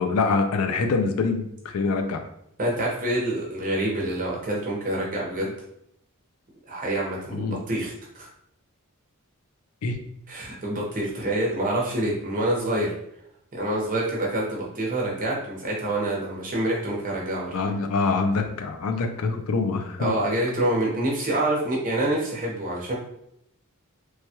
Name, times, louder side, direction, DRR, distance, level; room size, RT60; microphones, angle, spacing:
voice 1, 0.0-2.2 7.3-7.6 9.8-10.0 17.5-20.1, left 4 dB, 75° left, 6 dB, 0.4 m, -25 dB
voice 2, 2.6-5.5 6.7-8.3 10.3-12.9 13.5-17.5 20.0-22.9, right 1 dB, 40° right, -3 dB, 0.8 m, -26 dB
3.2 x 2.2 x 2.8 m, 0.75 s
head